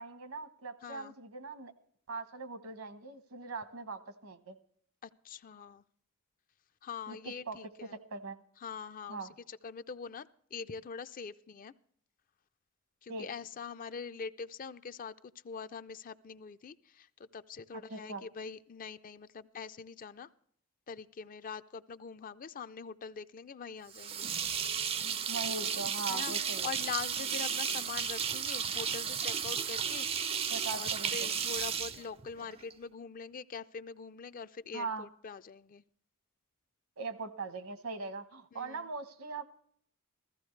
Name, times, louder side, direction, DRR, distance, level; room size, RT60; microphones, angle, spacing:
voice 1, 0.0-1.7 2.1-4.6 7.1-7.6 8.1-8.4 9.1-9.3 13.1-13.3 17.7-18.2 25.3-26.7 30.5-31.3 34.7-35.1 37.0-39.4, right 3 dB, 75° right, 10 dB, 1.1 m, -41 dB
voice 2, 0.8-1.1 5.0-5.8 6.8-8.0 8.6-11.7 13.0-20.3 20.9-24.3 26.1-26.3 26.6-30.1 30.7-35.8 38.5-38.9, left 6 dB, 40° left, 13 dB, 0.4 m, -43 dB
sound 1, 23.9-32.7, right 7 dB, 25° right, 0.4 m, -34 dB
15.0 x 14.5 x 3.2 m, 0.63 s
head